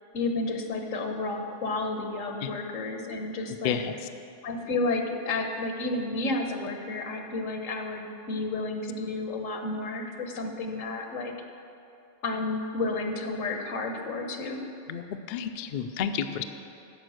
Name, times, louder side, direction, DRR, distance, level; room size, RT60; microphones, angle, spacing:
voice 1, 0.1-3.8 4.4-11.3 12.2-14.6, left 2 dB, 85° left, 4 dB, 1.3 m, -31 dB
voice 2, 3.6-4.0 14.9-16.4, left 8 dB, 60° left, 8 dB, 0.5 m, -31 dB
9.6 x 6.9 x 6.4 m, 2.7 s
omnidirectional pair, 1.3 m